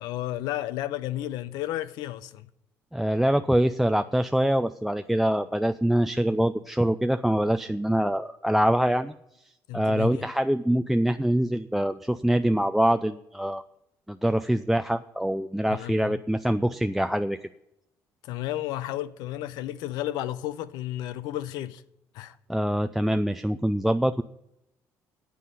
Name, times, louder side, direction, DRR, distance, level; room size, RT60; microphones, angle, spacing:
voice 1, 0.0-2.5 9.7-10.2 15.7-16.2 18.2-21.8 22.1-22.3, left 13 dB, 80° left, 0.6 m, -32 dB
voice 2, 2.9-9.1 9.7-13.6 14.1-17.4 22.5-24.2, right 1 dB, 5° right, 0.4 m, -24 dB
9.4 x 8.4 x 7.7 m
supercardioid pair, 85°, 7 cm